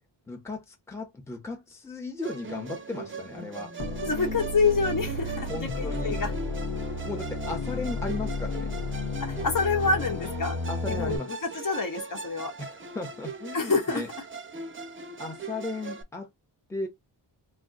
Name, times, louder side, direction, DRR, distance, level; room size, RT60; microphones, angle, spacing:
voice 1, 0.3-3.7 5.5-6.2 7.0-8.7 10.7-11.3 12.6-14.1 15.2-16.3 16.7-16.9, left 2 dB, 5° left, 0.7 m, -36 dB
Musical instrument, 2.2-16.0, right 4 dB, 30° right, 0.5 m, -40 dB
sound 1, 3.8-11.2, left 2 dB, 80° left, 0.9 m, -32 dB
voice 2, 4.0-6.3 9.2-10.6 10.9-12.5 13.5-14.0, left 4 dB, 50° left, 1.1 m, -27 dB
2.6 x 2.2 x 3.7 m
wide cardioid pair, 135°, 41 cm